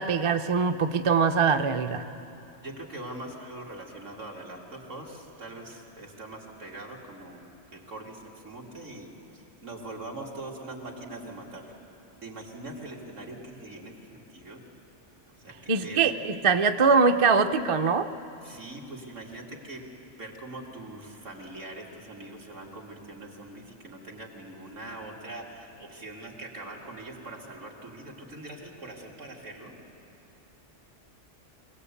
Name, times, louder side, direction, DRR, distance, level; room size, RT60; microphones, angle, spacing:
voice 1, 0.0-2.0 15.7-18.1, right 5 dB, 35° right, 8 dB, 0.5 m, -23 dB
voice 2, 2.6-7.4 7.7-11.7 12.2-14.6 15.4-16.1 18.4-19.8 20.2-29.8, right 2 dB, 80° right, -2 dB, 2.9 m, -42 dB
24.0 x 17.5 x 8.4 m, 2.8 s
omnidirectional pair, 1.3 m